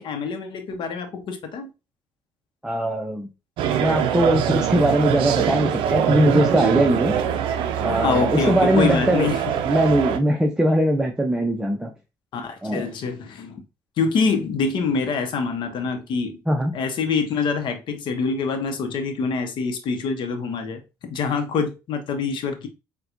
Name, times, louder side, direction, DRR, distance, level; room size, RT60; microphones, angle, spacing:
voice 1, 0.0-1.7 8.0-9.4 12.3-13.6 14.0-16.4 16.7-22.7, left 5 dB, 60° left, 0.8 m, -25 dB
voice 2, 2.6-3.3 3.8-7.2 7.8-9.3 9.7-11.9 12.6-12.9 16.5-16.7, right 1 dB, 5° right, 0.6 m, -21 dB
sound 1, 3.6-10.2, right 9 dB, 65° right, 0.4 m, -23 dB
4.1 x 2.2 x 2.5 m
hypercardioid pair, 60°, 10 cm